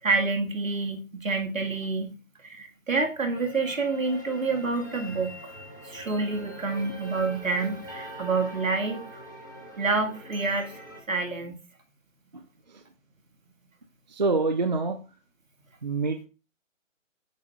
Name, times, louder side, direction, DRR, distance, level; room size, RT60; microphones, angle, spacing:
voice 1, 0.0-5.5 5.8-9.0 9.8-10.7 11.1-11.6, right 3 dB, 80° right, 3 dB, 1.9 m, -28 dB
sound 1, 3.3-11.0, equal, 15° left, 0.6 m, -43 dB
voice 2, 14.1-15.0 15.8-16.3, right 3 dB, 35° right, 6 dB, 0.5 m, -25 dB
8.0 x 6.4 x 2.4 m, 0.33 s
figure-of-eight pair, 155°, 40 cm